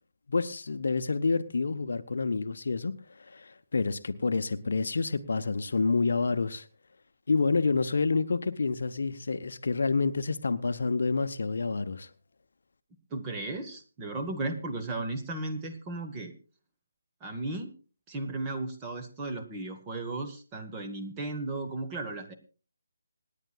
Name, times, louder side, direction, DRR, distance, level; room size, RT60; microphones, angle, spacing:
voice 1, 0.3-6.7 7.3-12.1, left 4 dB, 55° left, 0.8 m, -28 dB
voice 2, 13.1-16.3 17.2-17.7 18.1-22.3, right 2 dB, 15° right, 1.3 m, -35 dB
26.5 x 9.9 x 2.4 m
figure-of-eight pair, 150°, 0 cm